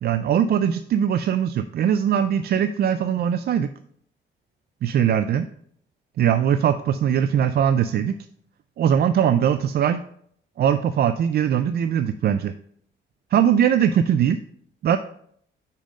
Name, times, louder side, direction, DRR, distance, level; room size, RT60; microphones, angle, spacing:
voice 1, 0.0-3.7 4.8-5.5 6.2-8.2 8.8-10.0 10.6-12.5 13.3-14.4 14.8-15.0, right 9 dB, 55° right, 11 dB, 0.4 m, -21 dB
5.3 x 5.1 x 5.1 m, 0.66 s
cardioid pair, 90°, 20 cm